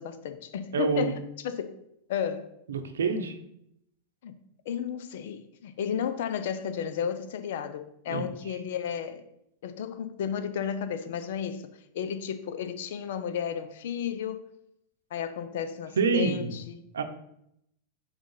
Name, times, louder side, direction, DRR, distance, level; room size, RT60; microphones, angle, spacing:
voice 1, 0.0-1.7 2.1-2.5 4.2-4.4 4.7-9.2 9.6-14.5 15.1-16.8, left 8 dB, 70° left, 0.6 m, -33 dB
voice 2, 0.7-1.1 2.7-3.3 8.1-8.3 16.0-16.5 16.9-17.0, right 5 dB, 85° right, 0.7 m, -26 dB
4.8 x 3.8 x 5.5 m
hypercardioid pair, 110°, 0 cm